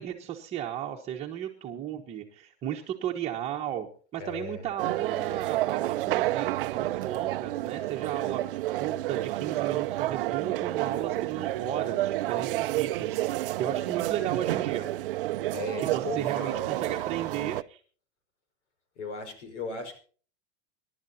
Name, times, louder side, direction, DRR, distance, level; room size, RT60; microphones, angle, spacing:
voice 1, 0.0-14.9 15.8-17.8, right 10 dB, 20° right, 0 dB, 1.1 m, -35 dB
voice 2, 4.2-4.6 15.5-16.7 19.0-20.0, left 4 dB, 85° left, 8 dB, 5.3 m, -37 dB
sound 1, 4.8-17.6, right 16 dB, 55° right, 0.6 m, -30 dB
26.5 x 12.0 x 2.8 m, 0.42 s
supercardioid pair, 170°, 34 cm